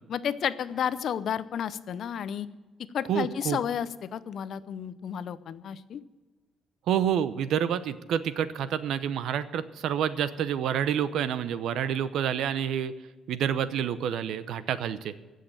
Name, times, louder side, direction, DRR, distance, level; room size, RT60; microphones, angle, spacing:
voice 1, 0.1-2.5 2.9-6.0, left 8 dB, 50° left, 15 dB, 0.5 m, -32 dB
voice 2, 3.1-3.6 6.9-12.9 13.3-15.1, right 9 dB, 65° right, 14 dB, 0.7 m, -28 dB
15.5 x 6.5 x 8.8 m, 1.3 s
cardioid pair, 175°, 0 cm